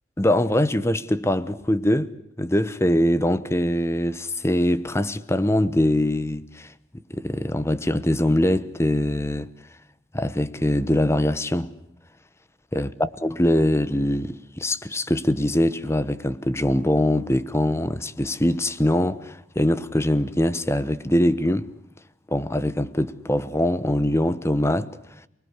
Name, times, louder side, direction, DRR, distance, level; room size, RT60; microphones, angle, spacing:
voice 1, 0.2-2.1 2.4-6.7 7.1-9.5 10.1-11.7 12.7-21.7 22.3-24.9, left 1 dB, 15° left, 1.1 m, -23 dB
29.0 x 20.5 x 8.2 m
head